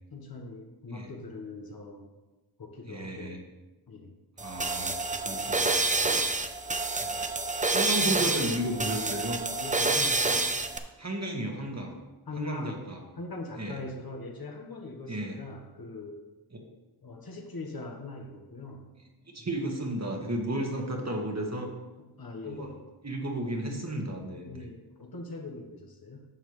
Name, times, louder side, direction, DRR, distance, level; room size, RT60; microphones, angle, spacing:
voice 1, 0.1-2.0 2.6-3.3 3.9-4.1 5.3-6.3 9.6-10.5 12.3-12.8 13.2-16.2 17.0-18.8 22.0-22.8 24.4-26.2, left 3 dB, 60° left, 2 dB, 1.4 m, -41 dB
voice 2, 2.9-3.4 4.4-6.2 7.0-7.2 7.7-9.4 11.0-11.9 12.4-13.0 13.6-13.8 15.1-15.4 16.5-16.6 19.3-21.7 22.5-22.7 23.0-24.7, right 1 dB, 40° right, 1 dB, 1.8 m, -33 dB
sound 1, 4.4-10.8, right 3 dB, 20° right, 0.7 m, -28 dB
11.5 x 6.5 x 3.2 m, 1.1 s
cardioid pair, 50°, 41 cm